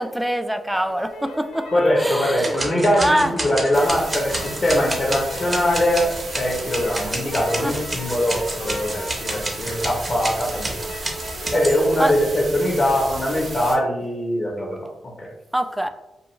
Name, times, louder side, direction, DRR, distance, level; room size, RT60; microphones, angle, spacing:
voice 1, 0.0-1.7 2.0-2.6 3.0-3.3 7.6-7.7 12.0-12.1 15.5-15.9, equal, 5° right, 8 dB, 0.3 m, -23 dB
sound 1, 0.7-11.7, left 2 dB, 85° left, 0.4 m, -38 dB
voice 2, 1.7-10.8 11.5-15.3, equal, 50° left, -2 dB, 0.7 m, -22 dB
sound 2, 2.4-11.8, right 2 dB, 35° right, 0.7 m, -29 dB
sound 3, 3.7-13.7, right 2 dB, 65° right, 0.7 m, -35 dB
2.4 x 2.2 x 2.9 m, 0.93 s
supercardioid pair, 45°, 0 cm